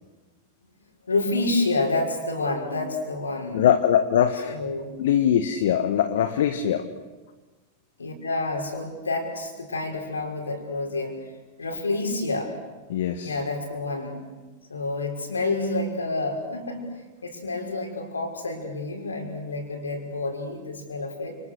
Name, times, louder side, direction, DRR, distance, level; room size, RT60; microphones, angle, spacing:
voice 1, 1.1-3.6 4.5-4.9 8.0-11.2 11.6-12.6 13.2-14.2 14.7-16.8 17.2-21.4, left 2 dB, 75° left, 2 dB, 5.8 m, -28 dB
voice 2, 3.5-4.5 5.0-6.9 12.9-13.4, left 9 dB, 55° left, 8 dB, 1.4 m, -22 dB
29.0 x 28.5 x 6.6 m, 1.2 s
figure-of-eight pair, 90°, 0 cm